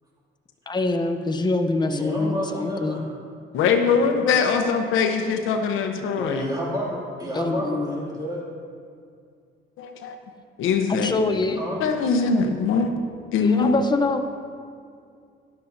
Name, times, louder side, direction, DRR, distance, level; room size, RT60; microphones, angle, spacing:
voice 1, 0.7-3.0 7.3-8.0 10.9-11.6 13.4-14.2, left 3 dB, 20° left, 6 dB, 0.8 m, -25 dB
voice 2, 1.9-3.0 6.2-8.4 11.6-11.8, equal, 20° right, -5 dB, 2.6 m, -30 dB
voice 3, 3.5-6.5 9.8-10.1 10.6-11.1 11.8-12.9 13.3-13.8, left 5 dB, 90° left, 5 dB, 0.9 m, -22 dB
12.5 x 11.0 x 2.7 m, 2.3 s
cardioid pair, 90°, 20 cm